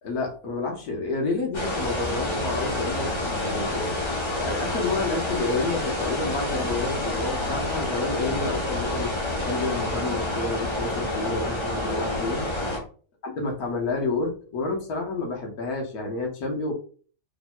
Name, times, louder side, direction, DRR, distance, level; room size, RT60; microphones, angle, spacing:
voice 1, 0.0-4.0 4.4-9.1 9.4-12.5 13.2-16.7, left 3 dB, 90° left, 1 dB, 1.5 m, -29 dB
sound 1, 1.5-12.8, left 1 dB, 25° left, 0.7 m, -28 dB
4.3 x 3.5 x 2.2 m, 0.41 s
omnidirectional pair, 1.5 m